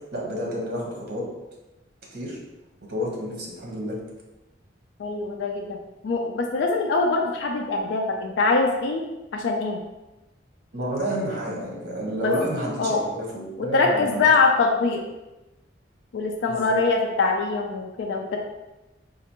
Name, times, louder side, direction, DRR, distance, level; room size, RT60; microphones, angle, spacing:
voice 1, 0.1-1.2 2.1-2.4 2.9-4.0 10.7-14.3 16.5-16.8, equal, 60° right, -2 dB, 1.0 m, -29 dB
voice 2, 5.0-5.8 6.0-9.0 9.3-9.8 12.2-12.3 12.8-13.0 13.6-15.0 16.1-18.4, left 3 dB, 75° left, 2 dB, 0.4 m, -23 dB
4.2 x 2.4 x 3.0 m, 1.0 s
head